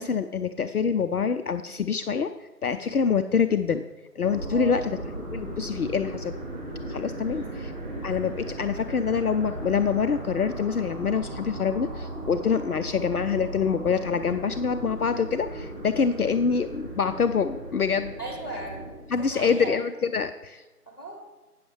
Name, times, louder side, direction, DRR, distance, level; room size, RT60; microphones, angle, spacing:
voice 1, 0.0-2.3 2.6-3.9 4.2-5.0 5.3-6.4 6.9-7.7 8.0-18.1 19.1-20.6, left 6 dB, 70° left, 9 dB, 0.5 m, -26 dB
sound 1, 4.2-18.9, right 1 dB, 40° right, 3.2 m, -37 dB
voice 2, 18.2-19.7 20.9-21.2, right 2 dB, 15° left, -13 dB, 2.8 m, -37 dB
9.3 x 6.4 x 4.9 m, 1.2 s
figure-of-eight pair, 175°, 47 cm